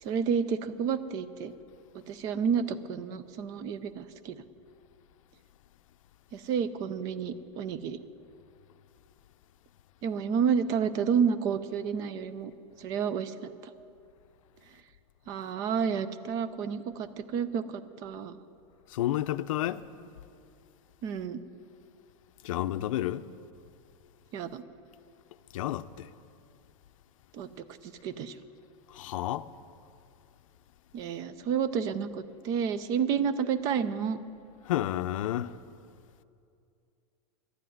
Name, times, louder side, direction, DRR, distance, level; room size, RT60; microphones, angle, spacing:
voice 1, 0.0-1.5 2.1-4.4 6.3-8.0 10.0-12.5 12.8-13.4 13.6-13.7 15.3-18.4 21.0-21.4 24.3-24.6 27.3-27.5 27.8-28.4 30.9-34.2, right 7 dB, 20° right, 0.4 m, -30 dB
voice 2, 18.9-19.8 22.4-23.3 25.5-26.1 28.9-29.5 34.6-35.6, left 13 dB, 75° left, 0.5 m, -31 dB
12.0 x 10.0 x 9.2 m
supercardioid pair, 180°, 17 cm